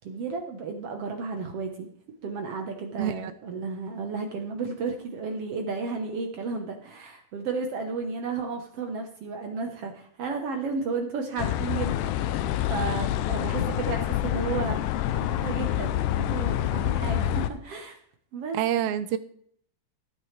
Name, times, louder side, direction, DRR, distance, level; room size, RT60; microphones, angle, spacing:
voice 1, 0.0-1.9 2.2-18.0 18.3-18.6, right 4 dB, 70° right, 4 dB, 1.5 m, -33 dB
voice 2, 3.0-3.3 18.5-19.2, right 11 dB, 85° right, 12 dB, 2.6 m, -27 dB
sound 1, 11.4-17.5, left 12 dB, 80° left, 1.9 m, -27 dB
16.0 x 9.0 x 3.3 m, 0.62 s
omnidirectional pair, 4.2 m